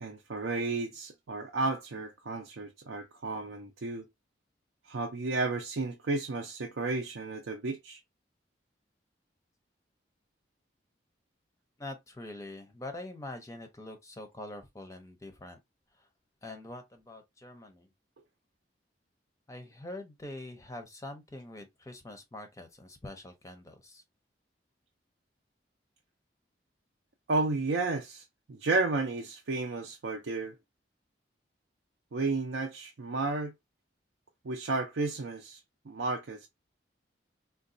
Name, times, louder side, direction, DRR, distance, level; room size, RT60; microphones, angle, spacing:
voice 1, 0.0-4.1 4.9-8.0 27.3-30.6 32.1-33.5 34.4-35.6 35.9-36.5, right 3 dB, 80° right, 0.5 m, -32 dB
voice 2, 11.8-15.6 15.9-16.1 16.4-17.9 19.5-24.0, left 1 dB, 15° left, 0.5 m, -44 dB
3.8 x 2.2 x 2.5 m
head